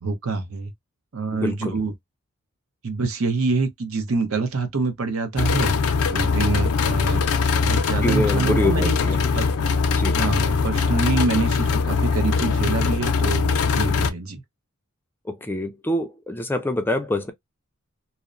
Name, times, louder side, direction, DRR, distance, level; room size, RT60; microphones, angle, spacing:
voice 1, 0.0-0.7 1.1-1.9 2.8-5.7 6.1-7.2 7.6-9.0 9.3-9.5 10.2-13.5 13.7-14.4, right 3 dB, 70° right, 0.7 m, -26 dB
voice 2, 1.3-1.8 8.0-9.2 9.9-10.1 15.2-17.3, left 1 dB, 10° left, 0.3 m, -25 dB
sound 1, 5.4-14.1, left 5 dB, 80° left, 0.4 m, -21 dB
2.8 x 2.0 x 2.4 m
head